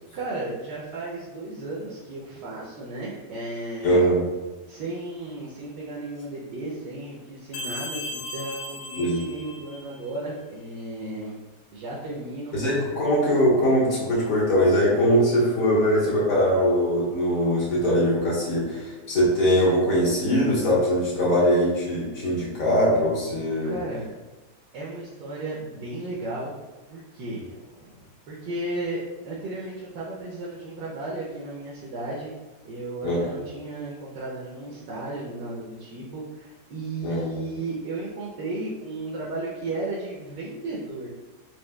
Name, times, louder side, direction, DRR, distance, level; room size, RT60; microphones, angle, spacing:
voice 1, 0.1-4.0 4.7-11.3 11.7-12.6 23.6-24.1 24.7-26.5 26.9-32.3 32.6-41.1, right 2 dB, 80° right, -5 dB, 1.3 m, -34 dB
voice 2, 3.8-4.2 9.0-9.2 12.5-23.7 33.0-33.3 37.0-37.3, equal, 55° left, -6 dB, 1.5 m, -21 dB
sound 1, 7.5-10.1, left 1 dB, 75° left, 1.1 m, -36 dB
4.4 x 2.6 x 2.2 m, 1.2 s
omnidirectional pair, 1.8 m